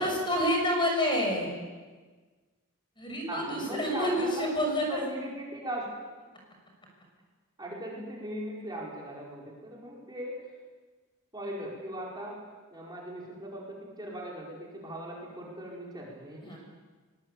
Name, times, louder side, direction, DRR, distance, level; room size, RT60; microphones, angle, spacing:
voice 1, 0.0-1.5 3.0-5.0 16.4-16.6, equal, 25° left, 1 dB, 6.6 m, -28 dB
voice 2, 3.3-4.4 4.9-5.9 7.6-10.4 11.3-12.4 12.7-16.6, right 1 dB, 20° right, -4 dB, 5.2 m, -39 dB
24.0 x 21.0 x 8.4 m, 1.4 s
head